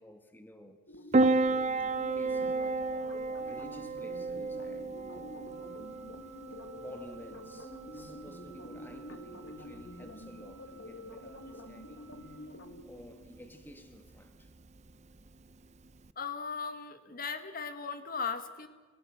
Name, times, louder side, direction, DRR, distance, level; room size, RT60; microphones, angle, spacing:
voice 1, 0.0-1.4 2.1-5.5 6.7-12.5 12.8-14.5, equal, 10° left, 1.8 m, -53 dB
sound 1, 0.9-12.8, left 1 dB, 70° left, 1.8 m, -48 dB
Piano, 1.1-16.1, right 3 dB, 35° right, 0.7 m, -34 dB
Wind instrument woodwind instrument, 5.5-12.4, right 9 dB, 65° right, 5.7 m, -57 dB
voice 2, 16.1-18.7, left 5 dB, 45° left, 1.7 m, -37 dB
28.5 x 16.5 x 6.5 m
head